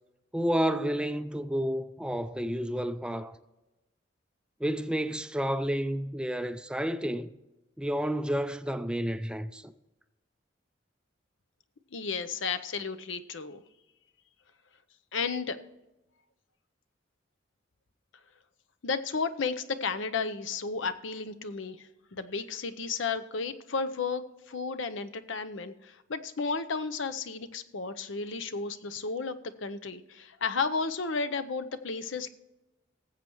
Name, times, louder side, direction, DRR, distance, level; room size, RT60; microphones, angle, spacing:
voice 1, 0.3-3.4 4.6-7.3 7.8-9.7, equal, 5° right, 0.4 m, -30 dB
voice 2, 11.9-13.6 15.1-15.6 18.8-32.3, left 4 dB, 70° left, 0.7 m, -33 dB
19.0 x 7.7 x 3.0 m
head